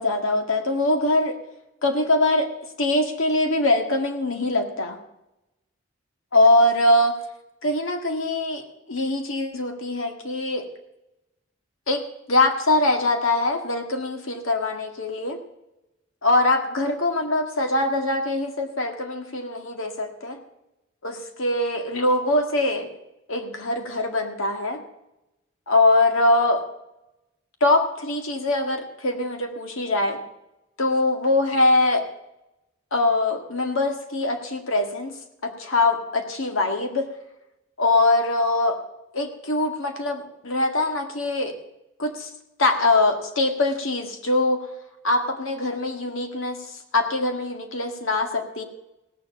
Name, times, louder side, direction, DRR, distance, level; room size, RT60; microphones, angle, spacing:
voice 1, 0.0-1.4 1.8-2.5 2.8-5.0 6.3-7.2 7.6-8.6 8.9-10.7 11.9-12.0 12.3-15.4 16.2-20.4 21.0-22.9 23.3-24.8 25.7-26.6 27.6-30.2 30.8-32.1 32.9-35.1 35.4-37.1 37.8-38.8 39.1-41.6 42.0-42.3 42.6-44.6 45.0-46.6 46.9-48.6, left 2 dB, 80° left, 4 dB, 1.8 m, -22 dB
17.5 x 7.2 x 7.1 m, 0.91 s
head